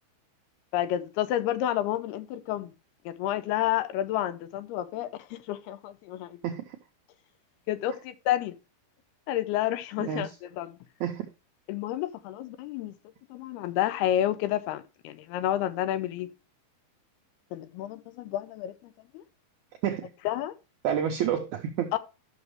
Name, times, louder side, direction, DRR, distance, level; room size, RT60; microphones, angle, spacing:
voice 1, 0.7-2.7 3.1-6.4 7.7-8.6 9.3-10.8 11.7-12.9 13.3-16.3 17.5-18.7 19.1-19.2 20.3-20.5 21.9-22.0, left 12 dB, 90° left, 2.8 m, -30 dB
voice 2, 6.4-6.8 10.0-10.3 11.0-11.3 19.8-20.1 20.8-21.9, right 9 dB, 85° right, 1.7 m, -29 dB
12.0 x 6.2 x 3.1 m
omnidirectional pair, 4.5 m